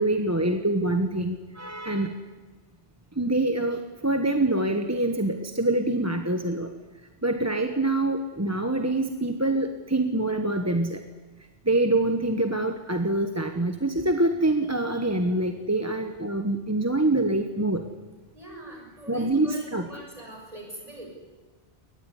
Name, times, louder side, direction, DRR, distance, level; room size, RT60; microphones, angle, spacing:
voice 1, 0.0-2.1 3.2-6.7 7.2-11.0 11.7-17.8 19.1-19.9, right 2 dB, 15° right, 6 dB, 1.2 m, -25 dB
voice 2, 18.3-21.1, right 1 dB, 35° right, 0 dB, 7.4 m, -43 dB
22.5 x 19.0 x 10.0 m, 1.3 s
omnidirectional pair, 1.2 m